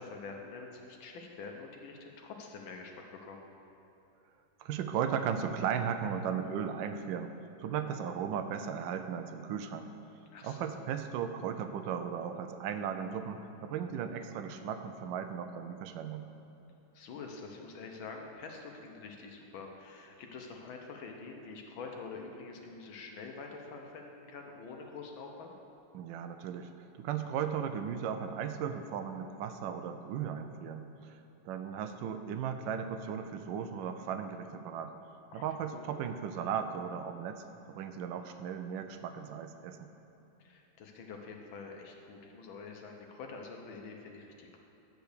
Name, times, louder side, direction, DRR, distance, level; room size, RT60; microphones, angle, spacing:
voice 1, 0.0-3.4 10.3-10.7 16.9-25.6 35.3-35.5 35.7-35.8 40.4-44.6, left 4 dB, 70° left, 2 dB, 1.5 m, -46 dB
voice 2, 4.6-7.3 7.6-9.9 10.4-16.3 25.9-31.2 31.4-34.9 35.3-39.9, right 7 dB, 75° right, 8 dB, 1.1 m, -36 dB
9.2 x 5.1 x 6.6 m, 2.9 s
omnidirectional pair, 2.4 m